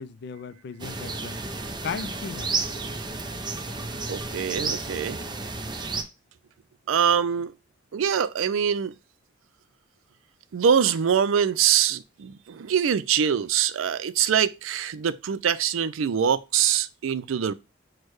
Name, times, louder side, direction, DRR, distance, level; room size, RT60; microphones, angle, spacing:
voice 1, 0.0-1.4 1.8-2.8, left 6 dB, 60° left, 0.3 m, -36 dB
sound 1, 0.8-6.0, right 3 dB, 25° right, 0.6 m, -32 dB
voice 2, 4.1-5.2 6.9-7.5 7.9-8.9 10.5-17.5, right 8 dB, 90° right, 0.4 m, -24 dB
6.3 x 2.2 x 3.0 m
head